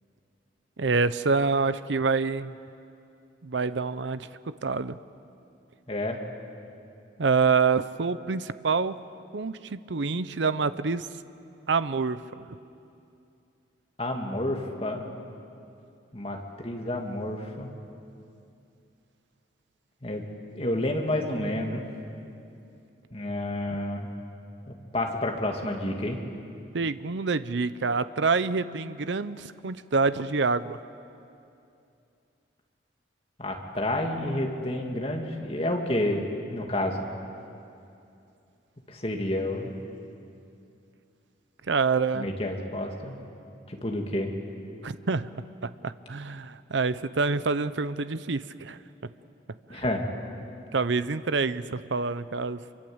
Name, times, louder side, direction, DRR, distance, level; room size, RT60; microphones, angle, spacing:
voice 1, 0.8-2.5 3.4-5.0 7.2-9.0 9.3-11.1 11.7-12.5 26.7-30.8 41.7-42.3 44.8-45.3 45.6-48.8 49.7-49.8 50.7-52.6, right 4 dB, 75° right, 14 dB, 0.7 m, -27 dB
voice 2, 5.9-6.2 14.0-15.1 16.1-17.7 20.0-20.2 20.5-21.8 23.1-24.1 24.7-26.2 33.4-36.2 36.5-37.0 38.9-39.7 42.1-43.2 43.7-44.3 49.7-50.0, left 1 dB, 30° left, 1 dB, 2.5 m, -30 dB
26.5 x 24.0 x 8.0 m, 2.6 s
head